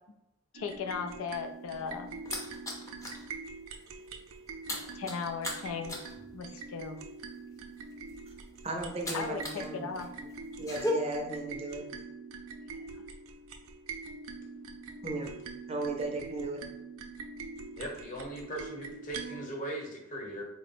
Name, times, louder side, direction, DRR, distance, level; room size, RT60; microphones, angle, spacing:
voice 1, 0.5-2.1 4.9-6.0 6.3-7.0 9.1-10.1, left 5 dB, 75° left, 5 dB, 0.4 m, -37 dB
sound 1, 0.5-19.5, right 4 dB, 80° right, 0.4 m, -44 dB
sound 2, 1.5-3.3 3.6-9.7 9.9-10.9, left 1 dB, 15° left, 0.6 m, -39 dB
voice 2, 8.6-9.9 10.6-11.8 15.0-15.3 15.7-16.6, right 2 dB, 30° right, 1 dB, 0.5 m, -35 dB
voice 3, 17.8-20.4, right 1 dB, 40° left, -1 dB, 1.0 m, -39 dB
3.8 x 2.1 x 4.2 m, 0.85 s
head